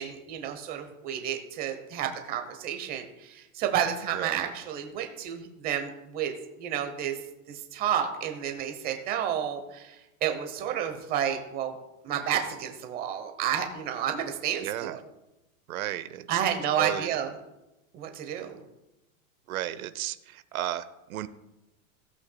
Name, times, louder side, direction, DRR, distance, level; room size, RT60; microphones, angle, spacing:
voice 1, 0.0-6.3 6.6-7.2 7.5-11.7 12.0-15.0 16.3-17.3 17.9-18.6, right 9 dB, 20° right, 6 dB, 0.9 m, -31 dB
voice 2, 14.6-15.0 15.7-16.4 16.8-17.2 19.5-21.3, right 13 dB, 75° right, 12 dB, 0.8 m, -33 dB
16.5 x 8.3 x 2.3 m, 0.96 s
supercardioid pair, 160°, 42 cm